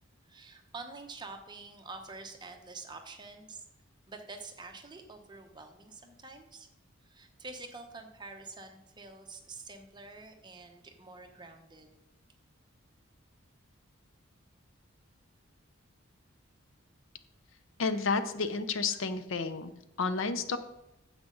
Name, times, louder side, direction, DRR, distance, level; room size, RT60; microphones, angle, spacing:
voice 1, 0.3-3.6 4.1-6.7 7.0-11.9, right 3 dB, 20° right, 4 dB, 1.0 m, -47 dB
voice 2, 17.8-19.7 20.0-20.6, left 4 dB, 65° left, 11 dB, 0.7 m, -31 dB
9.6 x 7.4 x 3.9 m, 0.91 s
head